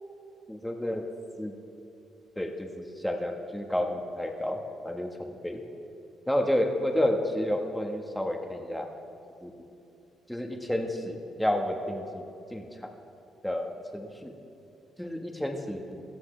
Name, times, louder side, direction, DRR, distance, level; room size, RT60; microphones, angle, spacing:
voice 1, 0.5-1.1 1.4-1.5 2.4-5.6 6.3-8.9 9.4-9.5 10.3-12.2 12.5-12.9 13.4-14.3 15.0-16.0, left 1 dB, 5° left, 2 dB, 1.3 m, -30 dB
17.5 x 13.0 x 3.3 m, 2.7 s
cardioid pair, 90°, 0 cm